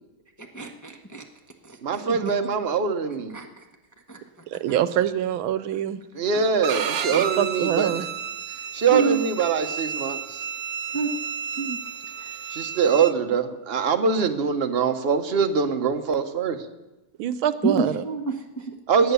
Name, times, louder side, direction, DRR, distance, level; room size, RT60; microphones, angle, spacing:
voice 1, 0.5-1.2 1.6-2.0 3.3-3.5 4.1-4.2 6.3-6.4 8.5-8.6 8.9-9.2 10.9-11.1 11.6-11.8 12.2-12.4 17.6-18.7, right 4 dB, 15° left, 3 dB, 0.8 m, -28 dB
voice 2, 1.8-3.4 6.2-8.0 8.7-10.4 12.5-16.6 18.9-19.1, right 6 dB, 40° right, 7 dB, 1.0 m, -23 dB
voice 3, 4.5-6.0 7.1-8.1 17.2-18.0, right 10 dB, 85° right, 14 dB, 1.6 m, -25 dB
Bowed string instrument, 6.6-13.1, right 7 dB, 55° right, 1.1 m, -32 dB
17.5 x 10.0 x 6.9 m, 1.0 s
omnidirectional pair, 2.2 m